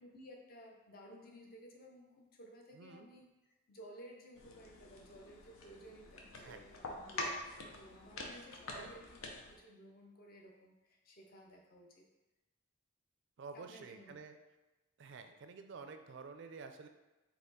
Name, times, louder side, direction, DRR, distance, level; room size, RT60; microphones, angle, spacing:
voice 1, 0.0-3.3 3.7-12.1 13.5-14.2, equal, 45° left, 0 dB, 0.7 m, -56 dB
voice 2, 2.7-3.1 6.4-6.6 8.7-8.9 13.4-14.4 15.0-16.9, right 4 dB, 60° right, 7 dB, 0.4 m, -50 dB
sound 1, 4.4-9.6, left 2 dB, 85° left, 0.6 m, -46 dB
4.2 x 2.8 x 4.0 m, 1.1 s
head